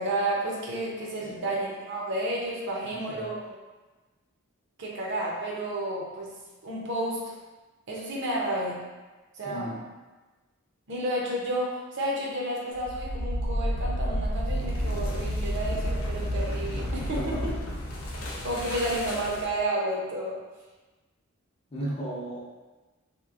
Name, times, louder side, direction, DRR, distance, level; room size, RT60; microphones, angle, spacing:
voice 1, 0.0-3.5 4.8-6.3 6.6-7.2 7.9-8.8 9.3-9.7 10.9-17.5 18.4-20.4, right 1 dB, 60° right, -3 dB, 0.6 m, -31 dB
voice 2, 2.8-3.3 9.4-9.8 17.1-17.5 21.7-22.4, right 1 dB, 30° left, -6 dB, 0.6 m, -35 dB
sound 1, 12.8-19.6, equal, 85° left, 0.5 m, -30 dB
2.9 x 2.5 x 2.4 m, 1.2 s
head